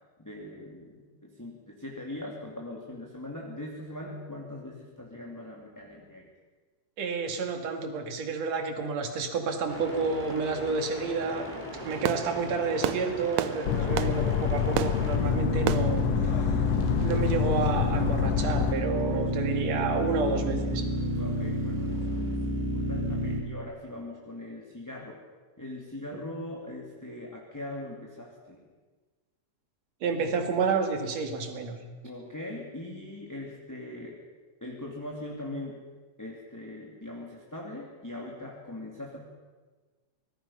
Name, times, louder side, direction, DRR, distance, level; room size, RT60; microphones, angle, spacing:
voice 1, 0.2-6.3 18.7-19.5 21.1-25.2 25.6-28.7 32.0-34.2 34.6-35.8 36.2-39.2, left 1 dB, 5° left, -2 dB, 2.0 m, -41 dB
voice 2, 7.0-16.0 16.3-16.7 17.0-20.9 30.0-31.8, right 4 dB, 55° right, 5 dB, 3.2 m, -30 dB
sound 1, 9.7-23.4, equal, 15° right, 3.2 m, -32 dB
Fireworks, 11.7-17.3, right 12 dB, 80° right, 1.5 m, -34 dB
sound 2, 13.6-18.7, left 10 dB, 85° left, 1.4 m, -27 dB
25.5 x 20.0 x 5.6 m, 1.3 s
omnidirectional pair, 3.9 m